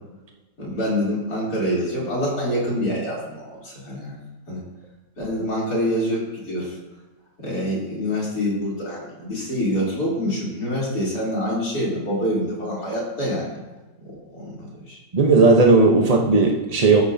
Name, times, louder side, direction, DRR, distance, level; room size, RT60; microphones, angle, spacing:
voice 1, 0.6-4.2 4.5-4.6 5.2-6.8 7.4-13.6 14.0-15.0, equal, 50° left, -6 dB, 3.8 m, -26 dB
voice 2, 15.1-17.0, right 3 dB, 50° right, 0 dB, 0.4 m, -15 dB
13.5 x 7.3 x 2.7 m, 1.2 s
omnidirectional pair, 2.1 m